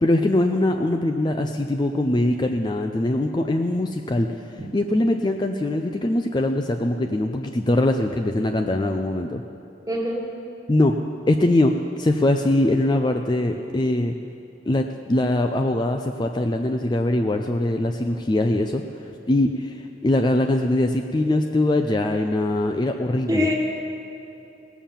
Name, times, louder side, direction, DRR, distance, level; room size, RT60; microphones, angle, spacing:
voice 1, 0.0-4.3 4.7-9.4 10.7-11.0 11.3-11.7 12.0-14.1 14.7-23.5, left 1 dB, 25° left, 4 dB, 0.4 m, -22 dB
voice 2, 9.9-10.3 23.3-23.5, left 1 dB, 20° right, 0 dB, 1.6 m, -23 dB
17.5 x 7.1 x 7.3 m, 2.8 s
head